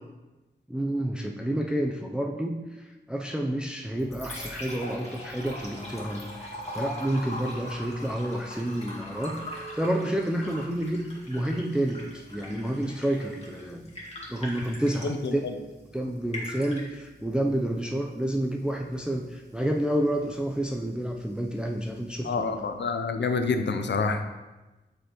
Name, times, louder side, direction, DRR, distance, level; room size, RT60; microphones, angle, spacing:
voice 1, 0.7-13.9 14.3-15.4 15.9-22.7, right 1 dB, 5° right, 1 dB, 0.5 m, -29 dB
Liquid, 3.8-22.8, left 1 dB, 35° left, 1.8 m, -42 dB
voice 2, 15.0-15.4 22.2-24.2, left 4 dB, 75° left, 8 dB, 0.6 m, -27 dB
6.5 x 5.0 x 3.0 m, 1.1 s
cardioid pair, 45°, 18 cm